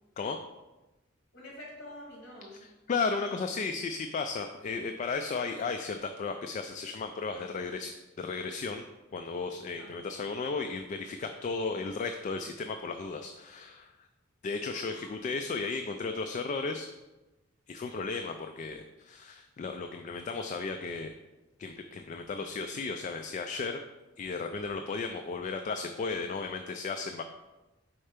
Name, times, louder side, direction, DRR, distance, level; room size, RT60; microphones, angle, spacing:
voice 1, 1.3-2.6 9.8-9.9 14.7-15.1 17.8-18.0, left 1 dB, 55° left, -3 dB, 1.7 m, -47 dB
voice 2, 2.9-8.8 9.1-13.9 14.4-16.9 17.7-21.1 21.6-23.8 24.2-27.2, left 4 dB, 40° left, 6 dB, 0.3 m, -34 dB
4.4 x 4.3 x 5.0 m, 1.1 s
head